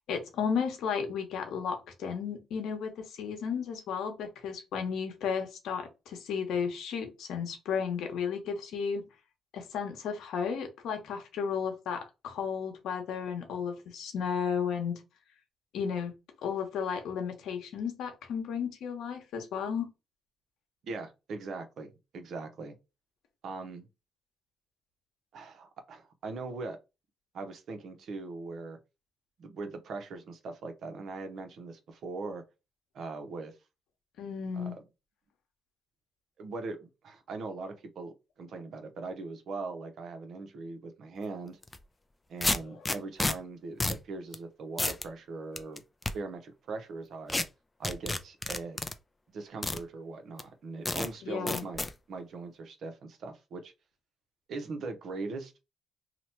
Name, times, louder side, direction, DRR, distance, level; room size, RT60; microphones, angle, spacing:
voice 1, 0.1-9.0 9.5-15.0 15.7-16.1 16.4-19.9 34.2-34.8 51.2-51.7, left 6 dB, 80° left, 0.9 m, -33 dB
voice 2, 20.8-22.8 23.4-23.9 25.3-26.8 27.3-28.8 29.4-32.4 32.9-33.6 34.5-34.7 36.4-41.6 42.3-45.8 46.1-47.5 47.8-48.8 49.3-53.7 54.5-55.6, right 3 dB, 65° right, 0.7 m, -40 dB
sound 1, 41.6-41.8 42.4-43.3 43.8-44.0 44.3-44.4 44.8-45.1 45.6-46.1 47.3-47.4 47.8-48.9 49.6-49.8 50.4-50.5 50.9-51.1 51.5-51.9, left 2 dB, 15° left, 0.3 m, -30 dB
2.9 x 2.1 x 4.1 m
cardioid pair, 90°, 0 cm